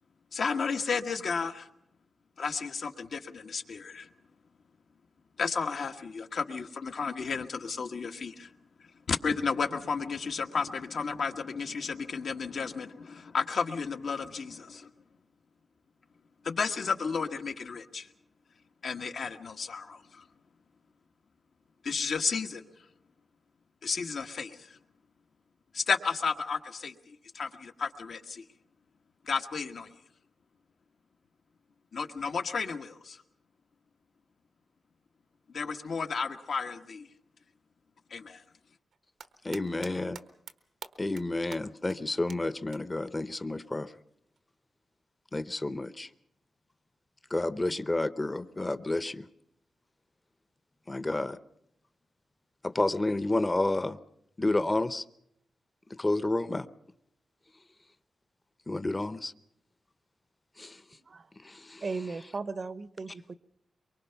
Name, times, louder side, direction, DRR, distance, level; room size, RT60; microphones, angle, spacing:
voice 1, 0.3-1.7 2.4-4.1 5.4-8.5 9.1-14.9 16.4-18.1 18.8-20.2 21.8-22.6 23.8-24.8 25.7-28.4 29.3-29.9 31.9-33.2 35.5-37.1 38.1-38.4, left 5 dB, 70° left, 5 dB, 1.3 m, -33 dB
sound 1, 38.9-39.9 40.2-40.5 40.8-41.2 41.5-41.6 41.9-42.0 42.3-42.4 42.7-42.8 44.4-44.5, right 6 dB, 90° right, 1.2 m, -44 dB
voice 2, 39.4-40.2 41.0-43.9 45.3-46.1 47.3-49.3 50.9-51.4 52.6-54.0 54.4-55.0 56.0-56.7 58.7-59.3 60.6-60.8 61.4-61.8, left 2 dB, 25° left, 13 dB, 0.8 m, -30 dB
voice 3, 61.8-63.3, right 4 dB, 50° right, 15 dB, 0.8 m, -36 dB
24.0 x 23.5 x 5.8 m, 0.77 s
cardioid pair, 90°, 0 cm